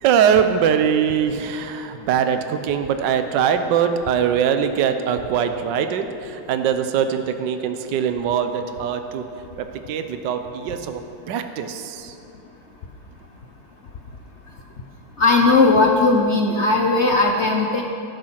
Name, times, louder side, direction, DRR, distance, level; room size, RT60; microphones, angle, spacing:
voice 1, 0.0-9.2 9.6-11.0 11.3-12.1, right 8 dB, 65° right, 8 dB, 1.3 m, -22 dB
voice 2, 15.2-17.8, left 3 dB, 65° left, 1 dB, 0.6 m, -17 dB
13.0 x 11.0 x 5.9 m, 2.6 s
omnidirectional pair, 2.4 m